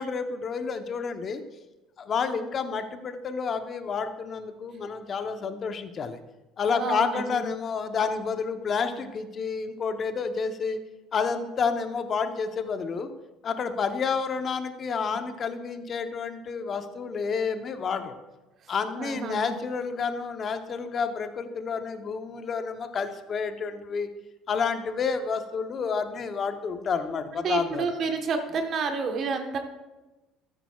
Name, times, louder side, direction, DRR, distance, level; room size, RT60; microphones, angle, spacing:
voice 1, 0.0-1.4 2.0-6.2 6.6-10.8 11.1-13.1 13.4-18.2 18.7-24.1 24.5-27.9, left 5 dB, 45° left, 8 dB, 0.9 m, -29 dB
voice 2, 6.8-7.4 19.0-19.6 27.3-29.6, right 4 dB, 50° right, 5 dB, 1.2 m, -29 dB
14.0 x 8.8 x 2.4 m, 1.1 s
supercardioid pair, 85°, 0 cm